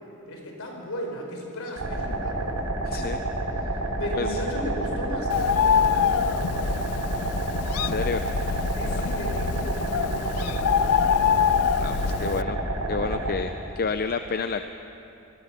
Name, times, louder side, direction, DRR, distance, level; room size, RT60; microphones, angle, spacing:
voice 1, 0.3-2.6 3.9-6.9 8.7-10.9, equal, 65° left, 1 dB, 4.6 m, -35 dB
sound 1, 1.8-13.3, right 1 dB, 90° right, 3.6 m, -29 dB
voice 2, 2.9-3.2 4.2-4.4 6.6-6.7 7.7-8.6 8.9-9.0 11.8-12.6 12.9-14.6, left 4 dB, 45° left, 8 dB, 0.6 m, -30 dB
Bird, 5.3-12.4, left 8 dB, 85° left, 0.4 m, -25 dB
25.5 x 20.0 x 6.0 m, 2.9 s
head